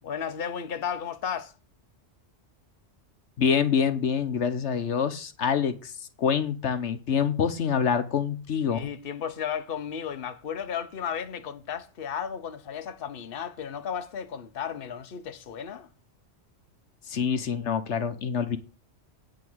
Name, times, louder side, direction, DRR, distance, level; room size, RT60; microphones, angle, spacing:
voice 1, 0.0-1.5 8.7-15.9, left 8 dB, 55° left, 1.1 m, -34 dB
voice 2, 3.4-5.9 6.2-8.9 17.1-18.6, left 7 dB, 75° left, 1.2 m, -26 dB
8.7 x 5.4 x 7.8 m
omnidirectional pair, 1.2 m